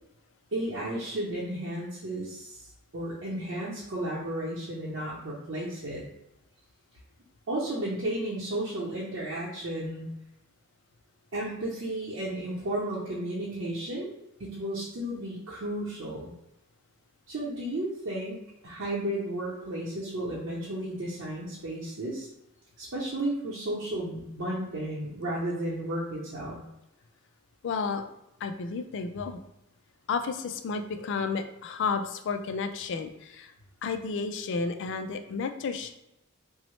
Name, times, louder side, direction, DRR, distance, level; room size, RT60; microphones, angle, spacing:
voice 1, 0.5-2.6 2.9-6.0 7.5-10.1 11.3-14.1 14.4-16.3 17.3-22.3 22.8-26.6, right 1 dB, 60° right, -6 dB, 0.6 m, -33 dB
voice 2, 27.6-28.0 28.4-29.4 30.1-33.5 33.8-35.9, left 5 dB, 60° left, 7 dB, 0.3 m, -32 dB
3.4 x 2.0 x 3.1 m, 0.89 s
head